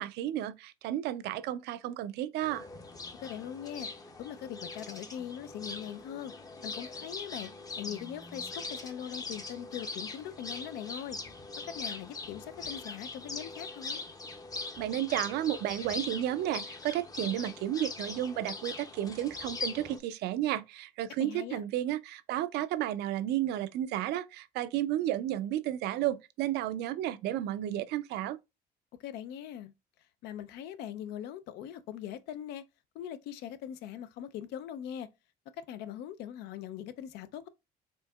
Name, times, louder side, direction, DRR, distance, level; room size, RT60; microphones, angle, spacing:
voice 1, 0.0-2.7 14.8-28.4, right 12 dB, 80° right, 0.4 m, -32 dB
sound 1, 2.4-20.0, left 3 dB, 20° left, 0.5 m, -41 dB
voice 2, 3.2-3.9 4.2-6.3 6.6-7.5 7.8-11.2 11.7-14.0 21.2-21.6 29.0-29.7 30.2-32.6 32.9-35.1 35.6-37.5, left 10 dB, 85° left, 0.4 m, -41 dB
4.5 x 2.7 x 2.3 m
cardioid pair, 110°, 17 cm